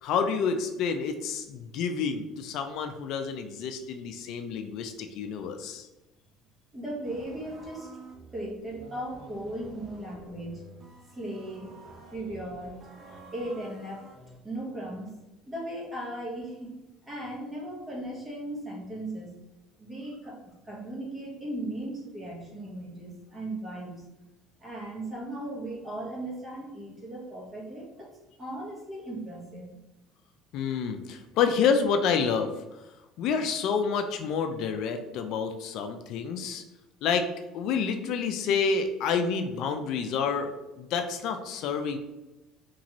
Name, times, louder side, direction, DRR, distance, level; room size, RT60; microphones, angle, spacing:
voice 1, 0.0-5.9 30.5-32.5 33.2-36.6 37.0-37.3 37.5-40.5 40.8-42.0, left 6 dB, 65° left, 7 dB, 0.3 m, -28 dB
voice 2, 6.7-7.9 8.3-10.7 11.1-11.7 12.1-13.0 13.3-14.1 14.4-16.7 17.1-19.4 19.8-24.0 24.6-28.1 28.4-29.8, right 1 dB, 15° right, -3 dB, 1.1 m, -37 dB
sound 1, 7.0-14.4, right 2 dB, 35° right, 0.6 m, -49 dB
3.0 x 2.5 x 2.9 m, 1.0 s
cardioid pair, 115°, 0 cm